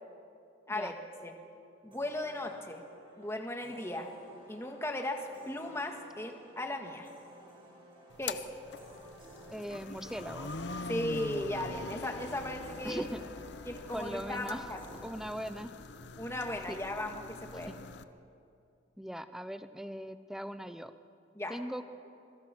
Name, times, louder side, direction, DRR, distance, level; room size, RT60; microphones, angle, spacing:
voice 1, 1.8-2.8 3.2-4.1 4.5-7.1 8.2-8.4 10.9-13.1 13.7-14.8 16.2-17.7 21.4-21.6, left 1 dB, 15° left, 3 dB, 1.9 m, -36 dB
sound 1, 1.9-15.6, right 1 dB, 30° right, 6.2 m, -55 dB
sound 2, 8.1-18.0, left 3 dB, 65° left, 0.9 m, -44 dB
voice 2, 9.5-10.5 12.8-13.2 13.9-14.7 15.0-15.7 16.7-16.8 17.7-17.8 19.0-20.9 21.5-21.8, equal, 5° right, 11 dB, 0.7 m, -40 dB
26.5 x 22.5 x 6.2 m, 2.6 s
head